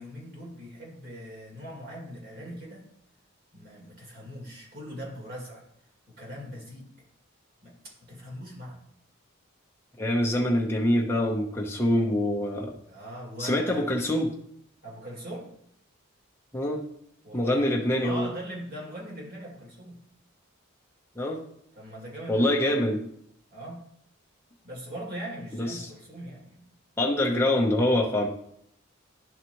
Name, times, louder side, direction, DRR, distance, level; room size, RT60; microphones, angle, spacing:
voice 1, 0.0-2.9 3.5-5.6 6.1-6.9 7.6-8.8 12.9-13.9 14.8-15.5 17.2-20.0 21.7-22.9 23.5-23.9 24.6-26.7 27.2-27.4, equal, 45° right, -3 dB, 2.4 m, -41 dB
voice 2, 10.0-12.8 13.4-14.3 16.5-16.8 17.3-18.3 21.2-21.4 22.3-23.0 25.6-25.8 27.0-28.3, left 1 dB, 10° left, -1 dB, 0.9 m, -25 dB
11.0 x 4.1 x 3.0 m, 0.71 s
head